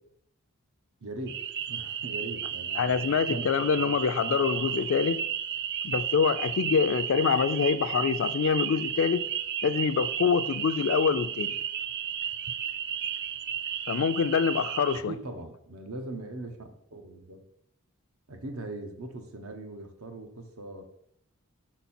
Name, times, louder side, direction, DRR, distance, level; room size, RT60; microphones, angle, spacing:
voice 1, 1.0-3.5 4.2-4.7 15.1-17.4 18.3-20.9, right 2 dB, 85° right, 0.9 m, -40 dB
sound 1, 1.3-15.0, right 9 dB, 55° right, 0.4 m, -33 dB
voice 2, 2.8-5.2 5.8-9.2 9.6-11.5 13.9-15.1, left 6 dB, 65° left, 0.4 m, -25 dB
6.2 x 4.1 x 4.2 m
head